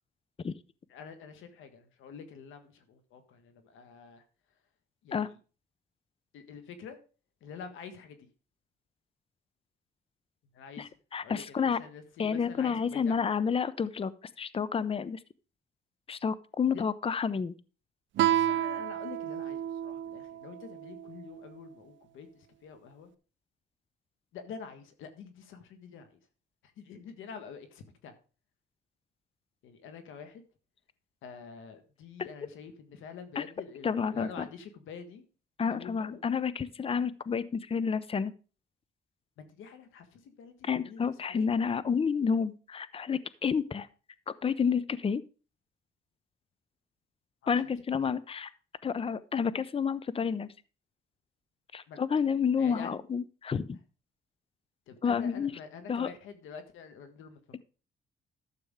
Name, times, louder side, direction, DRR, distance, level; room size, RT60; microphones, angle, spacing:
voice 1, 0.9-4.2 5.0-5.4 6.3-7.0 7.4-8.3 10.5-10.9 11.2-13.2 16.7-16.8 18.3-23.1 24.3-26.2 26.6-28.1 29.6-30.4 31.2-35.2 35.7-36.2 39.4-41.5 47.4-47.5 48.0-48.1 51.9-52.0 52.6-52.9 54.9-57.6, left 6 dB, 85° left, 8 dB, 1.5 m, -47 dB
voice 2, 10.8-11.8 12.2-14.1 14.4-15.2 16.1-17.6 33.4-33.5 33.8-34.5 35.6-38.3 40.6-43.9 44.3-45.2 47.5-48.5 48.8-50.5 51.7-53.8 55.0-55.5 55.9-56.1, left 6 dB, 30° left, 17 dB, 0.6 m, -30 dB
Guitar, 18.2-21.4, right 11 dB, 70° right, 0.6 m, -31 dB
12.5 x 6.9 x 3.6 m, 0.35 s
cardioid pair, 90°, 20 cm